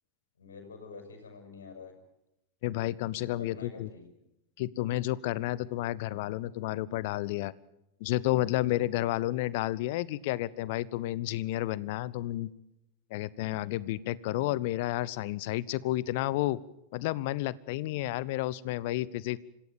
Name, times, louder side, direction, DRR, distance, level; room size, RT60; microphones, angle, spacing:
voice 1, 0.4-1.9 3.4-4.2, left 4 dB, 70° left, 5 dB, 6.6 m, -47 dB
voice 2, 2.6-3.9 4.6-7.5 8.0-12.5 13.1-16.6 16.9-19.4, left 16 dB, 50° left, 21 dB, 0.9 m, -31 dB
26.0 x 16.0 x 9.0 m, 0.87 s
figure-of-eight pair, 90°, 0 cm